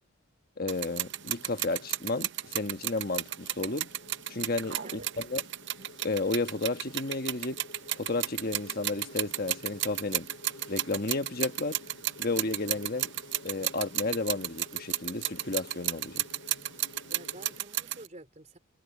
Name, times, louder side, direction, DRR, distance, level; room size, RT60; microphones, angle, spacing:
voice 1, 0.6-3.9 4.3-5.4 6.0-7.6 7.9-10.3 10.7-11.8 12.2-13.1 13.4-16.2, left 2 dB, 45° left, 1.3 m, -32 dB
sound 1, 0.7-18.1, right 14 dB, 55° right, 0.7 m, -34 dB
Insect, 0.9-17.6, left 3 dB, 75° left, 3.0 m, -51 dB
voice 2, 17.1-18.6, right 2 dB, 35° right, 3.7 m, -49 dB
head